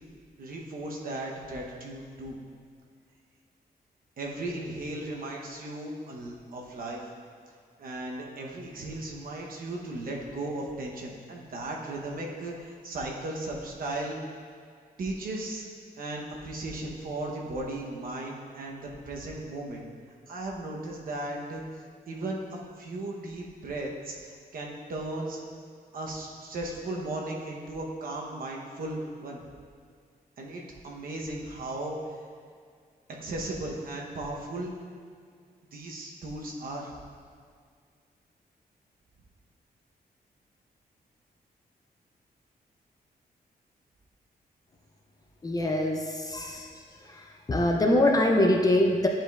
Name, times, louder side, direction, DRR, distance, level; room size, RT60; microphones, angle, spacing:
voice 1, 0.4-2.4 4.2-7.0 7.8-14.2 15.0-15.6 16.0-19.8 20.3-21.6 22.1-25.4 25.9-29.4 30.4-32.2 33.2-34.7 35.7-36.9, right 2 dB, 60° right, -1 dB, 0.9 m, -36 dB
voice 2, 45.4-46.7 47.5-49.1, left 1 dB, 20° left, 1 dB, 0.4 m, -23 dB
10.0 x 5.0 x 2.4 m, 2.1 s
wide cardioid pair, 175°, 17 cm